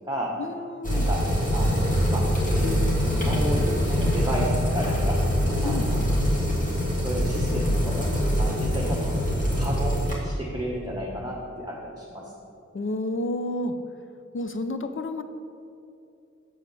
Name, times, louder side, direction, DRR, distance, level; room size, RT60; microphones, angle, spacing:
voice 1, 0.4-1.1 5.6-5.9 12.7-13.8 14.3-15.2, left 2 dB, 45° left, 8 dB, 0.6 m, -30 dB
sound 1, 0.8-10.1, equal, 25° left, 2.0 m, -24 dB
voice 2, 1.5-2.2 2.5-2.8 3.0-5.2 5.6-6.0 7.0-8.1 8.4-9.1 9.5-12.3, equal, 15° right, -3 dB, 1.1 m, -32 dB
7.1 x 4.6 x 6.8 m, 2.6 s
wide cardioid pair, 60°, 29 cm